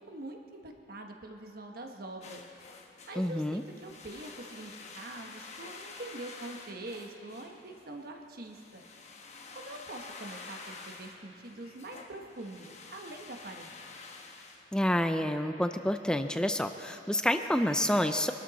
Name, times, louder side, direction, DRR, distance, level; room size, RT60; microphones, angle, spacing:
voice 1, 0.1-2.4 3.1-8.8 9.5-13.8, right 2 dB, 55° right, 3 dB, 1.3 m, -44 dB
sound 1, 2.2-15.2, left 4 dB, 40° left, 1.1 m, -49 dB
voice 2, 3.2-3.6 14.7-18.3, left 1 dB, 5° left, 8 dB, 0.4 m, -28 dB
23.5 x 12.5 x 4.2 m, 2.7 s
head